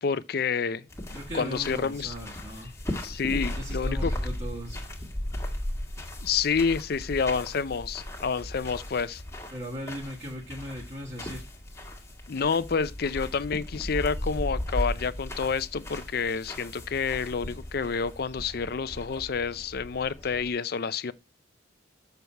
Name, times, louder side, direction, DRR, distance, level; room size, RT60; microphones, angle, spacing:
voice 1, 0.0-2.1 3.0-4.1 6.2-9.2 12.3-21.1, left 5 dB, 55° left, 0.5 m, -29 dB
sound 1, 0.9-20.5, left 1 dB, 15° left, 1.6 m, -36 dB
voice 2, 1.1-2.7 3.6-4.8 9.5-11.5, equal, 35° right, 1.8 m, -38 dB
6.8 x 6.5 x 4.5 m
head